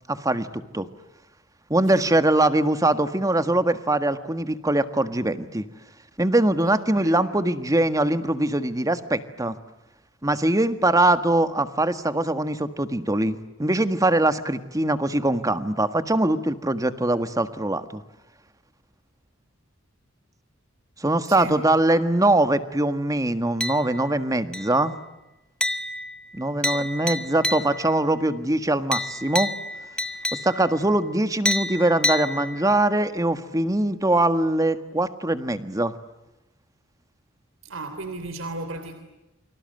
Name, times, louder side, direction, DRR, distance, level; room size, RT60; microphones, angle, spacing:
voice 1, 0.1-0.9 1.7-5.7 6.2-9.6 10.2-18.0 21.0-24.9 26.3-29.5 30.3-35.9, right 1 dB, 15° right, 10 dB, 1.5 m, -22 dB
voice 2, 6.6-7.2 21.3-21.6 37.6-38.9, right 2 dB, 75° right, 9 dB, 3.2 m, -35 dB
sound 1, 23.6-24.2 24.5-24.9 25.6-28.0 28.9-30.8 31.4-32.9, left 1 dB, 5° left, 1.1 m, -29 dB
29.5 x 25.5 x 7.8 m, 0.99 s
head